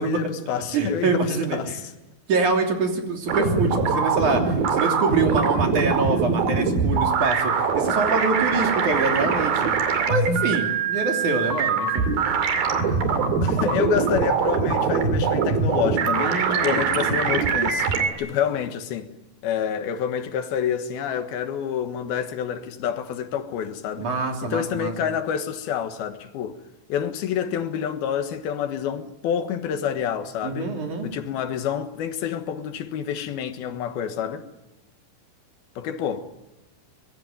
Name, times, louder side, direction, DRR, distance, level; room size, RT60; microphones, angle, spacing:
voice 1, 0.0-1.8 13.4-17.9 18.2-19.1 19.4-24.1 24.4-26.6 26.9-30.7 31.0-34.5 35.8-36.3, left 8 dB, 85° left, 3.3 m, -28 dB
voice 2, 0.7-1.8 2.3-9.7 10.1-12.1 16.2-16.9 24.0-25.1 30.4-31.1, right 4 dB, 55° right, 4.4 m, -25 dB
sound 1, 3.3-18.1, right 5 dB, 75° right, 4.2 m, -23 dB
25.0 x 22.5 x 9.2 m
omnidirectional pair, 4.3 m